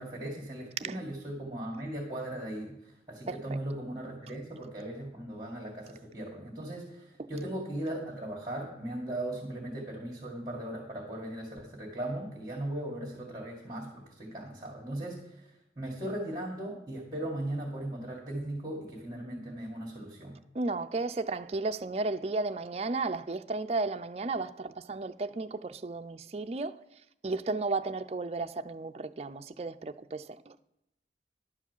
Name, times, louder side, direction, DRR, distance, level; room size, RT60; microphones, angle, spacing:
voice 1, 0.0-2.8 3.1-15.2 15.8-20.4, right 1 dB, 20° right, 2.1 m, -38 dB
voice 2, 3.3-3.6 20.5-26.8 27.2-30.6, right 3 dB, 35° right, 0.4 m, -34 dB
11.5 x 4.8 x 7.3 m
head